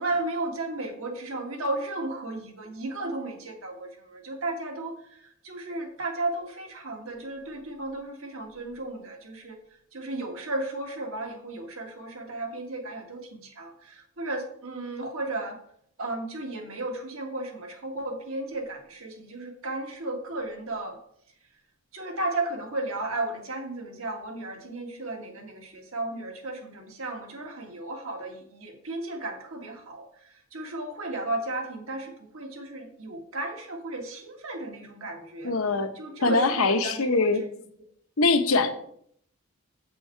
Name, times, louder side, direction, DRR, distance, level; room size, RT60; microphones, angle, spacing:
voice 1, 0.0-9.6 9.9-15.6 16.0-21.0 21.9-37.5, right 2 dB, 75° right, 3 dB, 1.7 m, -34 dB
voice 2, 35.4-35.9 36.2-37.4 38.2-38.7, left 3 dB, 75° left, 7 dB, 0.9 m, -22 dB
7.3 x 6.2 x 4.5 m, 0.66 s
head